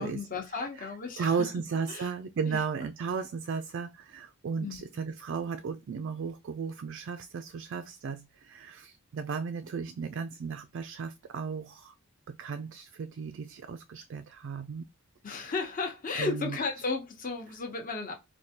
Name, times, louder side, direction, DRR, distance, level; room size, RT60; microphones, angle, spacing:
voice 1, 0.0-1.3 1.9-2.1 2.5-2.6 4.6-5.1 15.2-18.1, left 4 dB, 40° left, 0.8 m, -34 dB
voice 2, 1.2-11.9 12.3-14.8 16.2-16.6, right 5 dB, 55° right, 0.3 m, -35 dB
4.5 x 2.2 x 2.8 m
head